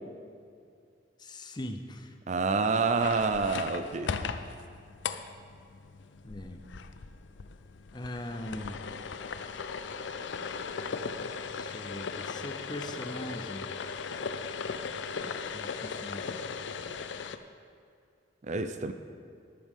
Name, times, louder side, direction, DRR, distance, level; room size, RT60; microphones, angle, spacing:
voice 1, 1.2-2.2 6.2-6.6 7.9-8.8 11.5-13.7 15.2-16.3, left 1 dB, 25° left, 7 dB, 0.6 m, -40 dB
voice 2, 2.3-4.1 18.5-18.9, right 4 dB, 40° right, 9 dB, 0.4 m, -28 dB
sound 1, 3.0-17.4, left 5 dB, 80° left, 0.5 m, -38 dB
12.5 x 11.0 x 3.6 m, 2.3 s
head